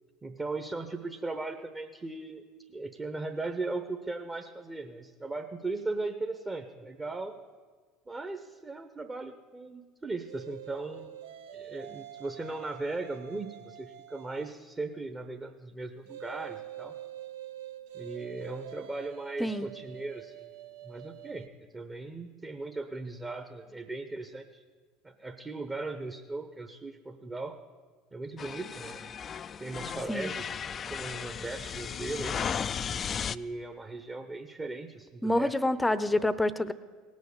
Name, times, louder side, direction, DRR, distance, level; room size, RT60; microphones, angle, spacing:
voice 1, 0.2-2.4 2.7-7.4 8.1-11.1 11.5-16.9 17.9-20.5 20.8-21.5 21.7-24.6 25.0-27.6 28.1-29.1 29.6-30.4 30.9-32.4 33.3-35.6, right 3 dB, 20° right, 6 dB, 0.9 m, -38 dB
sound 1, 10.3-14.7 16.1-21.5, right 12 dB, 70° right, 0.7 m, -46 dB
sound 2, 28.4-33.4, left 7 dB, 35° left, 0.3 m, -35 dB
voice 2, 35.2-36.7, left 1 dB, 10° left, 15 dB, 0.7 m, -27 dB
18.0 x 6.3 x 8.5 m, 1.5 s
hypercardioid pair, 75°, 0 cm